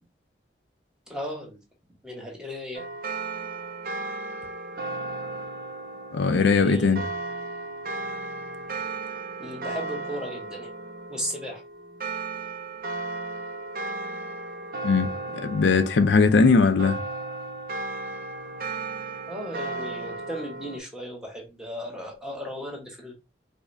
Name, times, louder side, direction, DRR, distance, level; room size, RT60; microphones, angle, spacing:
voice 1, 1.1-1.6 2.0-2.8 6.4-7.0 9.4-10.7 11.1-11.6 19.3-23.1, equal, 5° right, 0.9 m, -36 dB
sound 1, 2.7-20.8, right 3 dB, 50° right, 0.4 m, -35 dB
voice 2, 6.1-7.0 14.8-15.1 15.4-17.0, left 4 dB, 80° left, 0.4 m, -19 dB
4.8 x 2.1 x 2.5 m
head